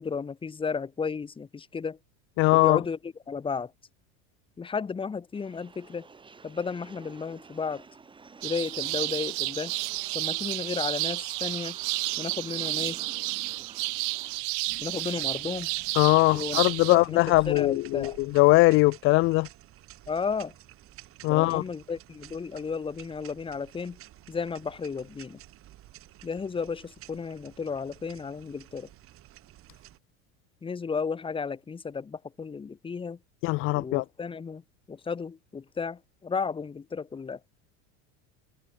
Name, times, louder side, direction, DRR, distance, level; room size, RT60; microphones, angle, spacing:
voice 1, 0.0-2.0 2.5-3.7 4.6-6.1 6.4-7.8 8.4-9.7 10.1-11.8 12.2-13.0 14.8-15.7 16.3-18.2 20.1-20.5 21.3-24.0 24.3-25.4 26.2-28.9 30.6-33.2 33.7-34.6 34.9-37.4, left 5 dB, 15° left, 2.8 m, -33 dB
voice 2, 2.4-2.8 16.0-19.5 21.2-21.6 33.4-34.0, left 21 dB, 40° left, 0.4 m, -21 dB
sound 1, 5.3-14.4, right 4 dB, 15° right, 6.1 m, -51 dB
sound 2, 8.4-17.0, right 36 dB, 60° right, 1.6 m, -31 dB
sound 3, 14.7-30.0, right 14 dB, 40° right, 5.2 m, -51 dB
cardioid pair, 150°, 33 cm